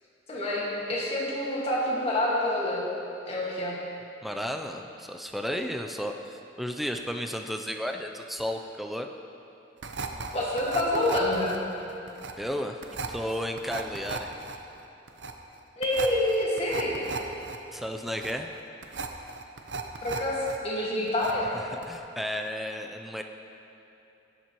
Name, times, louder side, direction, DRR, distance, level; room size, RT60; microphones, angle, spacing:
voice 1, 0.3-2.8 3.3-3.8 10.3-11.6 15.8-17.0 20.0-21.5, left 1 dB, 35° left, -5 dB, 1.7 m, -27 dB
voice 2, 4.2-9.1 12.4-14.3 17.7-18.5 21.7-23.2, equal, ahead, 4 dB, 0.4 m, -33 dB
sound 1, 9.8-20.6 20.8-21.6 21.8-22.0, right 4 dB, 90° right, 0.7 m, -37 dB
17.5 x 7.4 x 3.0 m, 3.0 s
head